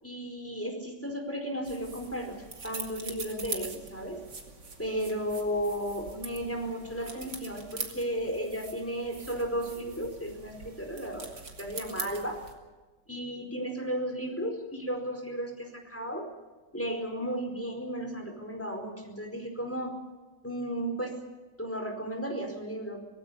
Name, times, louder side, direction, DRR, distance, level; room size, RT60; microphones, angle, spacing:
voice 1, 0.0-4.2 4.8-11.3 11.6-12.4 13.1-16.3 16.7-20.0 20.4-21.2 21.6-23.0, equal, 5° left, 3 dB, 4.7 m, -34 dB
sound 1, 1.6-12.5, right 4 dB, 70° right, 3.2 m, -43 dB
25.0 x 18.0 x 7.0 m, 1.2 s
omnidirectional pair, 1.9 m